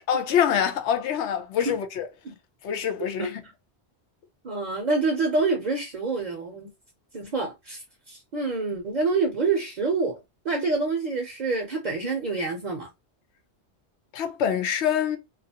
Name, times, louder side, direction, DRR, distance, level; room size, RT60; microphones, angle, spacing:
voice 1, 0.0-2.1 2.6-3.4 14.1-15.2, left 8 dB, 85° left, 0.9 m, -25 dB
voice 2, 4.4-6.7 7.1-10.2 10.4-12.9, right 3 dB, 45° right, 0.7 m, -27 dB
2.4 x 2.3 x 2.7 m
omnidirectional pair, 1.2 m